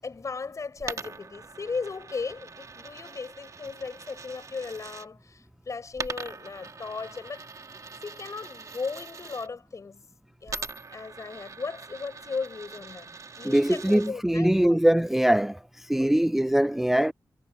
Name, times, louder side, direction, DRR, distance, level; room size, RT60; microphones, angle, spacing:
voice 1, 0.0-7.5 8.0-10.0 10.4-13.1 13.4-14.8 16.0-16.1, left 4 dB, 50° left, 6.5 m, -36 dB
Coin (dropping), 0.8-5.1 5.9-9.5 10.5-14.1, right 4 dB, 50° right, 2.3 m, -42 dB
voice 2, 13.4-15.6 15.9-17.1, right 1 dB, 5° right, 0.3 m, -22 dB
wide cardioid pair, 105°, 7 cm